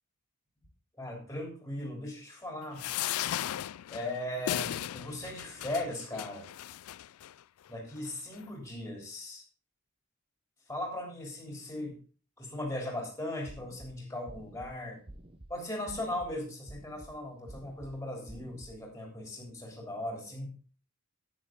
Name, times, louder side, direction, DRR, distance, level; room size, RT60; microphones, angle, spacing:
voice 1, 1.0-2.8 3.9-6.5 7.7-9.4 10.7-12.0 12.4-15.0 15.5-20.5, left 1 dB, 10° left, 0 dB, 3.5 m, -38 dB
sound 1, 2.8-7.3 8.0-8.1 8.3-8.4, left 12 dB, 70° left, 0.3 m, -36 dB
sound 2, 13.5-13.9 14.3-14.7 15.1-15.5 15.9-16.3 16.7-17.1 17.5-17.9 18.3-18.7, right 1 dB, 25° right, 1.0 m, -49 dB
9.8 x 9.2 x 3.8 m, 0.37 s
head